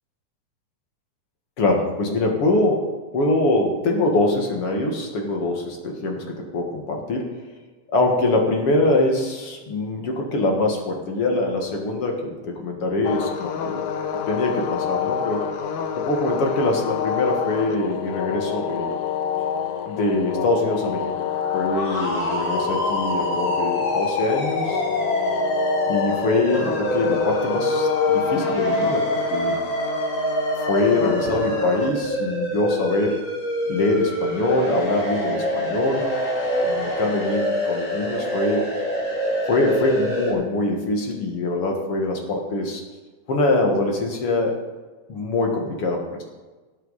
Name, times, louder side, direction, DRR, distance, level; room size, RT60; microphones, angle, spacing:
voice 1, 1.6-2.9 3.1-7.3 7.9-13.8 14.3-15.5 16.0-18.9 19.9-21.1 21.5-24.8 25.9-29.6 30.7-33.2 33.7-36.0 36.6-38.6 39.5-42.8 43.3-44.6 45.1-46.2, left 2 dB, 50° left, 1 dB, 2.3 m, -23 dB
sound 1, 13.0-31.9, left 8 dB, 75° left, 2.2 m, -28 dB
sound 2, 21.3-40.3, equal, 25° left, 3.4 m, -25 dB
17.5 x 8.1 x 4.1 m, 1.3 s
omnidirectional pair, 3.7 m